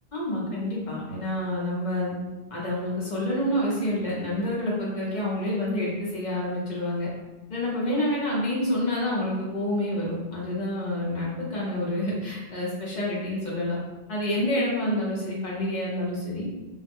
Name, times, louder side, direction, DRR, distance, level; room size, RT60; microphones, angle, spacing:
voice 1, 0.1-2.1 2.5-7.1 7.5-13.8 14.1-16.5, left 1 dB, 50° left, -5 dB, 0.7 m, -28 dB
2.3 x 2.0 x 3.4 m, 1.2 s
omnidirectional pair, 1.1 m